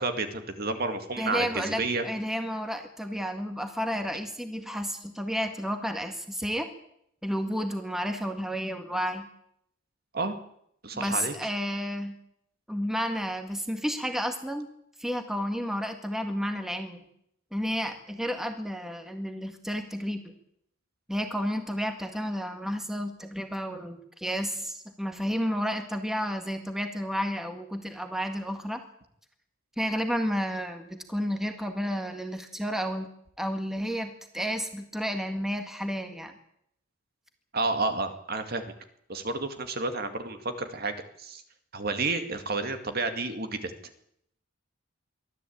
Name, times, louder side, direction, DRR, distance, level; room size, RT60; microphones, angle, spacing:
voice 1, 0.0-2.0 10.1-10.4 10.8-11.4 37.5-38.7 39.1-41.4 41.7-43.7, right 3 dB, 45° right, 8 dB, 2.2 m, -30 dB
voice 2, 1.2-6.7 7.2-9.3 10.9-12.2 12.7-14.7 15.0-17.1 17.5-20.3 21.1-28.8 29.8-33.1 33.4-36.3, equal, ahead, 6 dB, 1.8 m, -31 dB
23.5 x 14.0 x 8.7 m, 0.73 s
head